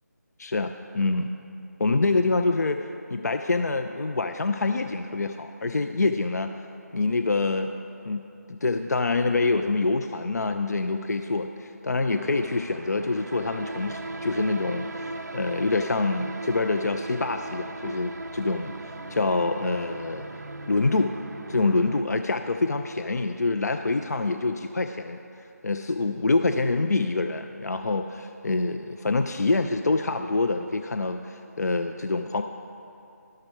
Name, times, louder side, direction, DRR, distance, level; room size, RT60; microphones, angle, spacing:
voice 1, 0.4-1.3 1.8-6.5 6.9-7.7 8.0-20.2 20.7-21.1 21.5-25.2 25.6-32.4, left 3 dB, 70° left, 6 dB, 0.4 m, -26 dB
sound 1, 12.1-22.0, right 2 dB, 70° right, 0.5 m, -38 dB
12.0 x 5.8 x 4.5 m, 2.7 s
figure-of-eight pair, 160°, 9 cm